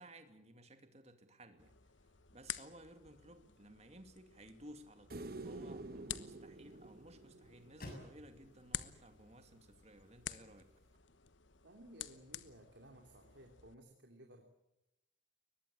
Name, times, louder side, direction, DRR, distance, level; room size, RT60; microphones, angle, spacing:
voice 1, 0.0-1.7 2.3-10.7, right 1 dB, 35° right, 7 dB, 2.5 m, -57 dB
sound 1, 1.6-13.7, left 10 dB, 75° left, 1.2 m, -51 dB
sound 2, 4.3-10.4, left 1 dB, 45° left, 7.1 m, -59 dB
sound 3, 5.1-8.4 10.9-11.0, right 2 dB, 50° right, 1.1 m, -49 dB
voice 2, 11.6-14.4, right 1 dB, 65° right, 3 dB, 3.0 m, -58 dB
23.0 x 20.0 x 8.6 m, 0.88 s
head